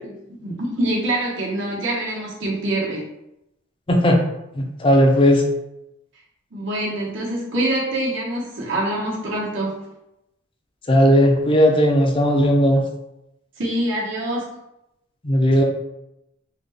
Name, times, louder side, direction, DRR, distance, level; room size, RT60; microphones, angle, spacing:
voice 1, 0.0-3.0 6.5-9.7 13.6-14.4, right 1 dB, 70° right, -5 dB, 1.0 m, -25 dB
voice 2, 3.9-4.2 4.5-5.4 10.9-12.8 15.2-15.6, equal, 25° left, 2 dB, 0.5 m, -16 dB
3.8 x 2.2 x 3.3 m, 0.88 s
head